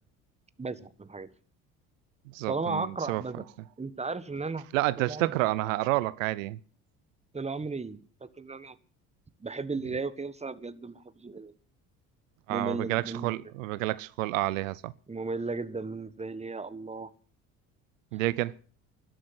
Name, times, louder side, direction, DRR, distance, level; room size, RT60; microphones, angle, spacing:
voice 1, 0.6-1.3 2.5-3.4 3.8-4.7 5.0-5.3 7.3-8.0 8.4-8.7 9.4-11.5 12.5-13.3 15.1-17.1, right 3 dB, 15° right, 1.5 m, -35 dB
voice 2, 2.3-3.2 4.7-6.6 12.5-14.9 18.1-18.5, right 18 dB, 90° right, 0.7 m, -29 dB
13.0 x 11.5 x 8.0 m
hypercardioid pair, 70°, 38 cm